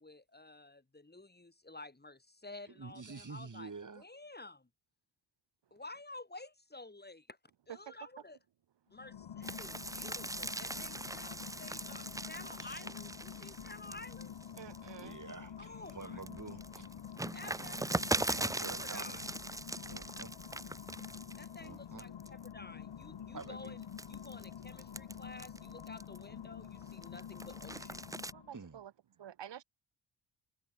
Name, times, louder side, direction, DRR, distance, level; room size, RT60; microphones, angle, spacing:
voice 1, 0.0-3.7 4.0-4.7 5.7-7.4 7.7-8.4 8.9-14.4 15.6-16.2 17.3-19.3 21.4-28.1, left 2 dB, 20° left, 5.5 m, -51 dB
voice 2, 2.8-4.0 12.6-12.9 15.0-16.9 18.3-19.2 19.8-20.3 21.6-22.1 23.3-23.8 28.5-28.8, right 4 dB, 35° right, 5.7 m, -48 dB
sound 1, 8.9-28.7, left 9 dB, 60° left, 2.4 m, -48 dB
sound 2, 9.4-15.3 15.8-21.7 22.0-22.5 23.0-26.3 26.8-28.3, right 2 dB, 5° right, 0.6 m, -40 dB
voice 3, 14.6-15.2 28.3-28.9 29.2-29.6, right 10 dB, 55° right, 1.2 m, -49 dB
cardioid pair, 60°, 50 cm